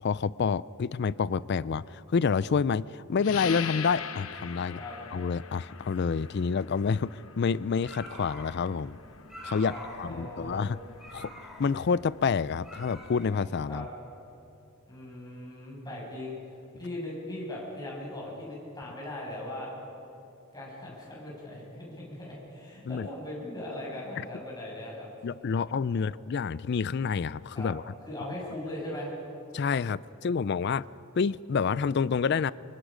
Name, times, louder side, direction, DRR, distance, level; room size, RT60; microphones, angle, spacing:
voice 1, 0.0-4.8 5.1-9.0 9.4-10.8 11.1-11.3 11.6-13.9 22.9-23.1 24.2-24.3 25.2-27.8 29.5-30.8 31.2-32.5, left 5 dB, 55° left, 0.4 m, -28 dB
sound 1, 3.2-13.5, left 7 dB, 85° left, 1.0 m, -43 dB
sound 2, 7.7-13.7, equal, ahead, 3.6 m, -47 dB
voice 2, 9.7-10.7 13.7-13.9 14.9-16.4 16.8-19.7 20.5-25.1 25.9-26.1 27.5-27.7 28.1-29.1, left 1 dB, 20° left, 6.5 m, -39 dB
25.5 x 22.5 x 5.1 m
head